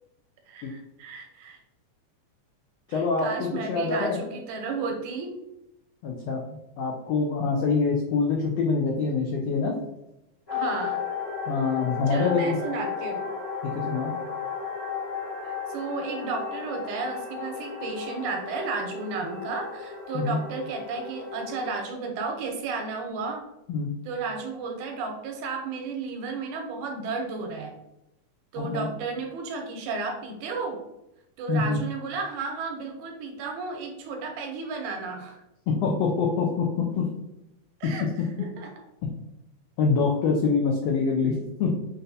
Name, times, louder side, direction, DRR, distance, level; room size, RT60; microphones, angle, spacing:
voice 1, 0.5-1.6 2.9-5.4 10.5-11.0 12.1-13.3 15.4-23.4 24.1-27.8 28.5-30.8 31.4-35.4 37.8-38.1 38.4-38.7, right 4 dB, 80° right, 3 dB, 2.1 m, -33 dB
voice 2, 2.9-4.2 6.0-6.4 6.8-9.8 11.5-12.6 13.9-14.1 20.1-20.4 23.7-23.9 28.6-28.9 31.5-31.8 35.7-37.1 38.0-38.1 39.8-41.7, left 4 dB, 85° left, 0 dB, 1.4 m, -25 dB
sound 1, 10.5-21.7, left 6 dB, 45° left, 0.5 m, -34 dB
5.8 x 2.6 x 2.6 m, 0.88 s
omnidirectional pair, 3.5 m